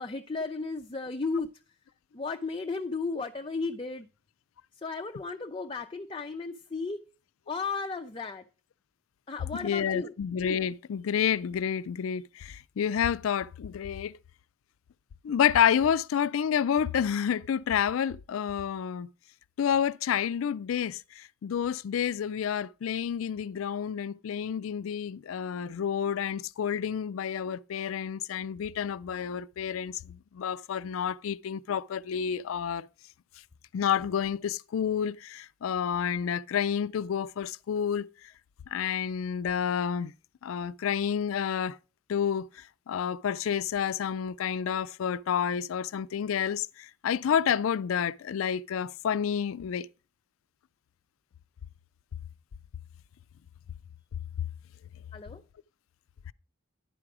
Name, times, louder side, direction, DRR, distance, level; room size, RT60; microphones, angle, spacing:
voice 1, 0.0-1.5 2.1-4.1 4.8-7.0 7.5-8.4 9.3-10.1 55.1-55.4, left 4 dB, 25° left, 0.4 m, -34 dB
voice 2, 9.6-14.2 15.2-19.1 19.6-32.9 33.7-38.1 38.7-40.1 40.4-41.8 42.1-49.9 56.3-56.4, left 8 dB, 90° left, 0.4 m, -29 dB
10.5 x 4.8 x 5.9 m
head